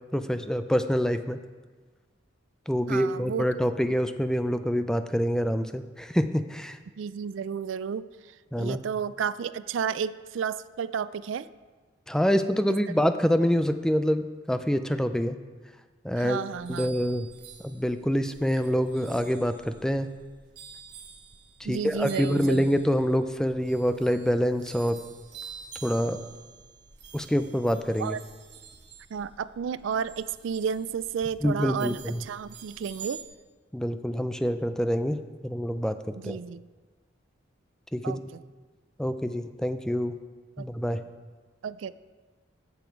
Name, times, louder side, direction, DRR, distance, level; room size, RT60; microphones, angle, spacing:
voice 1, 0.1-1.4 2.7-6.8 8.5-8.8 12.1-14.2 14.5-15.3 16.0-16.4 16.7-17.3 17.6-20.1 21.6-25.0 25.8-26.2 27.1-28.2 31.4-32.2 33.7-36.0 36.2-36.4 37.9-38.2 39.0-40.2 40.6-41.0, equal, 5° left, 9 dB, 0.4 m, -26 dB
voice 2, 2.9-3.5 7.0-11.5 12.7-12.8 16.2-16.9 21.6-22.8 28.0-28.2 29.1-33.2 36.2-36.6 38.0-38.4 40.6-40.7 41.6-41.9, right 7 dB, 80° right, 16 dB, 0.4 m, -32 dB
sound 1, 16.5-33.2, right 6 dB, 55° right, 1.5 m, -48 dB
15.0 x 7.1 x 4.6 m, 1.4 s
head